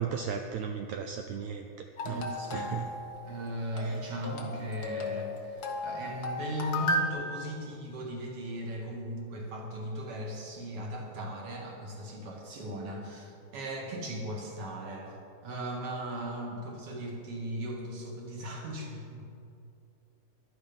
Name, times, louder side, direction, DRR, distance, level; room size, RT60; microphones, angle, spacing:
voice 1, 0.0-2.9 3.8-4.0, right 7 dB, 85° right, 5 dB, 1.6 m, -36 dB
sound 1, 2.0-7.1, left 1 dB, 90° left, 0.8 m, -35 dB
voice 2, 2.1-2.7 3.2-15.2 15.4-19.2, equal, 45° right, 0 dB, 2.8 m, -38 dB
15.5 x 12.0 x 5.4 m, 2.5 s
omnidirectional pair, 4.0 m